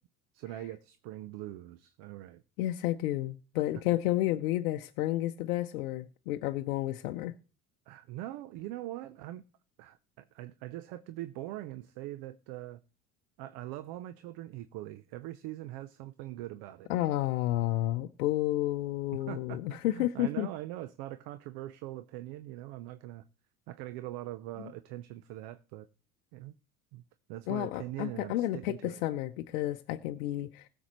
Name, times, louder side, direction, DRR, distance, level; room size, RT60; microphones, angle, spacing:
voice 1, 0.3-2.4 7.9-9.4 9.8-12.8 13.4-16.9 19.3-23.2 23.7-25.9 26.3-26.5 26.9-27.0 27.3-29.0, right 15 dB, 55° right, 0.7 m, -42 dB
voice 2, 2.6-7.3 16.9-20.5 27.5-30.7, left 15 dB, 65° left, 0.7 m, -31 dB
20.5 x 7.1 x 3.0 m
figure-of-eight pair, 65°, 45 cm